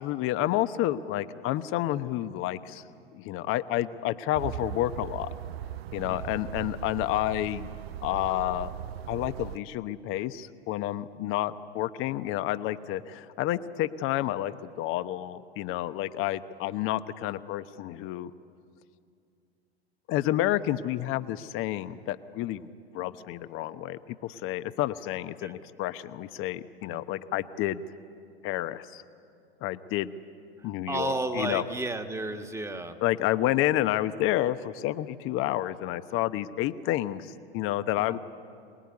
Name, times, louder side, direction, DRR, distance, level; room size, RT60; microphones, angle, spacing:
voice 1, 0.0-2.8 3.1-5.3 5.9-7.7 8.0-8.7 9.1-18.3 20.1-22.7 22.9-27.8 28.4-29.0 29.6-30.1 30.6-31.6 33.0-38.2, left 14 dB, 40° left, 12 dB, 1.0 m, -30 dB
City at night, 4.3-9.6, right 11 dB, 70° right, 0.6 m, -38 dB
voice 2, 30.6-33.0 38.0-38.2, right 2 dB, 10° right, 6 dB, 1.7 m, -33 dB
25.5 x 19.5 x 9.7 m, 2.4 s
hypercardioid pair, 95°, 32 cm